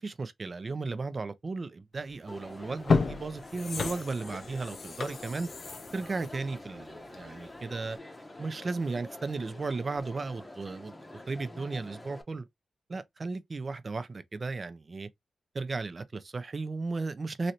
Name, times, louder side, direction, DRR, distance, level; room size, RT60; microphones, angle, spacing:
voice 1, 0.0-5.5 5.9-8.0 8.4-10.9 11.3-12.5 12.9-15.1 15.5-17.5, right 3 dB, 45° right, 0.5 m, -35 dB
sound 1, 2.1-2.2 2.7-7.4 7.8-7.9, left 4 dB, 65° left, 0.4 m, -32 dB
Crowd, 2.3-12.2, left 1 dB, 20° left, 0.7 m, -47 dB
3.1 x 2.7 x 2.8 m
cardioid pair, 80°, 0 cm